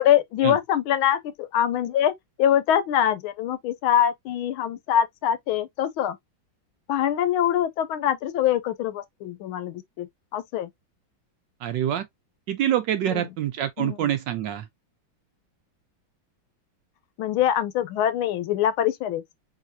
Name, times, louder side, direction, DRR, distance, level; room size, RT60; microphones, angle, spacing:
voice 1, 0.0-2.1 2.4-6.2 6.9-10.7 13.1-13.3 13.8-14.1 17.2-19.3, left 10 dB, 80° left, 1.5 m, -24 dB
voice 2, 11.6-12.1 12.5-14.7, right 11 dB, 75° right, 1.1 m, -26 dB
4.9 x 3.9 x 2.7 m
omnidirectional pair, 2.3 m